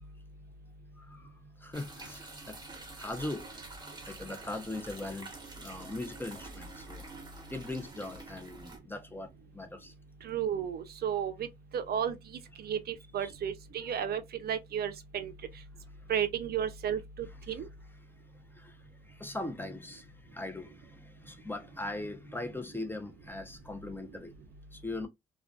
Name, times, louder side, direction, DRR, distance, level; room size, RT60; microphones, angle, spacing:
voice 1, 1.0-1.3 1.6-2.6 3.0-3.5 4.1-5.3 5.6-7.0 7.5-9.3 9.5-9.9 13.2-13.3 13.8-13.9 17.3-17.7 18.6-18.7 19.1-24.3 24.7-25.1, left 2 dB, 10° left, 0.5 m, -40 dB
sound 1, 1.7-8.8, right 3 dB, 25° right, 1.0 m, -47 dB
voice 2, 10.2-11.5 11.7-15.3 16.1-17.7, right 8 dB, 65° right, 0.4 m, -33 dB
2.4 x 2.2 x 2.3 m
cardioid pair, 65°, 18 cm